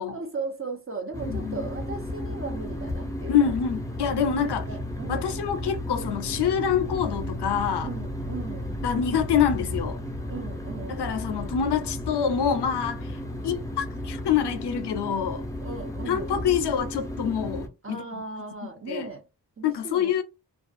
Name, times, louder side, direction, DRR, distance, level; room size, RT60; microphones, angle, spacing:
voice 1, 0.1-3.5 4.4-5.3 7.8-8.8 10.3-11.1 15.6-16.4 17.8-19.2 19.6-20.2, right 4 dB, 30° right, 0.7 m, -37 dB
sound 1, 1.1-17.7, left 1 dB, 10° left, 0.4 m, -33 dB
voice 2, 1.3-1.6 3.3-4.6 5.1-7.9 8.8-10.0 10.9-13.1 13.4-15.4 16.1-18.2 18.9-19.1 19.6-20.2, left 8 dB, 70° left, 0.5 m, -26 dB
2.4 x 2.3 x 2.4 m
wide cardioid pair, 90°, 42 cm